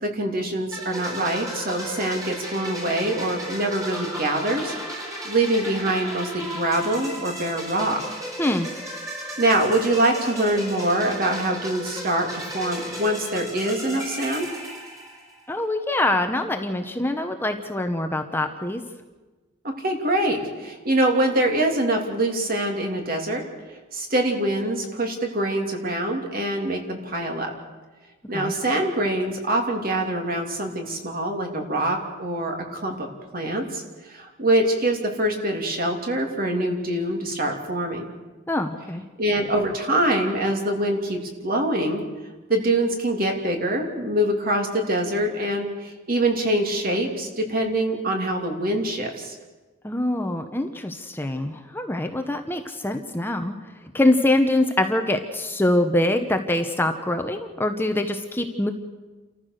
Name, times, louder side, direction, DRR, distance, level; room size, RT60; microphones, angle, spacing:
voice 1, 0.0-8.0 9.4-12.3 12.5-14.4 19.6-23.4 23.9-27.5 28.3-33.1 33.3-38.0 39.2-42.0 42.5-49.4, right 1 dB, 45° right, 2 dB, 3.1 m, -24 dB
sound 1, 0.7-15.5, equal, 15° right, 4.0 m, -35 dB
voice 2, 15.5-18.8 28.3-28.6 38.5-39.0 49.8-53.5 53.9-58.7, left 1 dB, 10° left, 5 dB, 1.0 m, -24 dB
29.5 x 14.5 x 6.6 m, 1.2 s
head